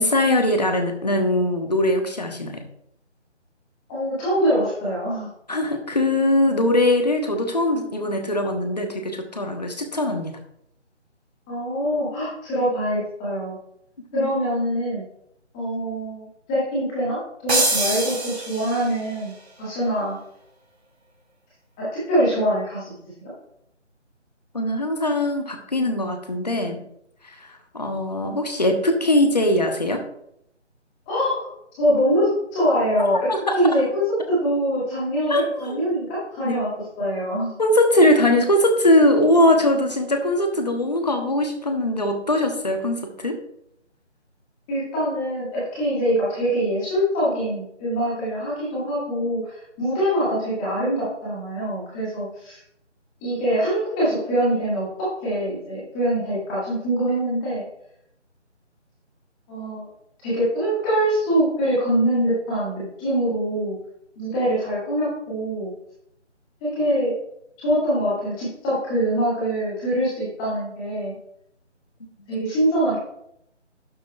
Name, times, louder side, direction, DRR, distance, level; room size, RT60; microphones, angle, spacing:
voice 1, 0.0-2.6 5.5-10.4 14.1-14.3 24.5-26.8 27.2-27.5 27.7-30.0 33.3-33.6 35.3-35.9 36.4-36.5 37.6-43.4, left 1 dB, 35° left, 5 dB, 1.1 m, -21 dB
voice 2, 3.9-5.3 11.5-13.6 14.1-15.0 15.5-19.3 19.6-20.2 21.8-23.3 31.1-31.5 31.8-34.0 34.3-36.7 37.0-37.6 44.7-52.6 53.2-57.6 59.5-59.9 60.2-63.7 64.1-65.7 66.6-67.2 67.6-71.1 72.3-73.0, equal, 5° left, -9 dB, 1.7 m, -24 dB
sound 1, 17.5-19.1, right 2 dB, 60° right, 1.9 m, -24 dB
11.5 x 7.4 x 2.4 m, 0.75 s
figure-of-eight pair, 160°, 36 cm